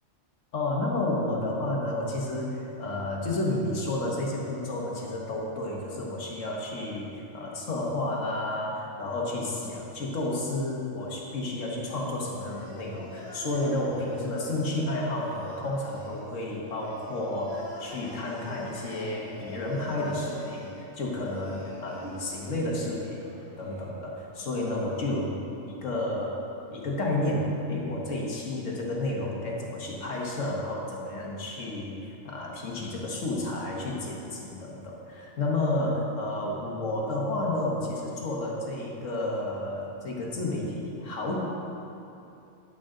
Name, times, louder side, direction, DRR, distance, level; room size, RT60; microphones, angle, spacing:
voice 1, 0.5-23.3 23.6-26.4 26.7-41.4, left 1 dB, 80° left, -2 dB, 1.6 m, -31 dB
sound 1, 11.9-23.8, equal, 30° right, 2.6 m, -45 dB
10.0 x 8.9 x 3.8 m, 2.8 s
omnidirectional pair, 1.3 m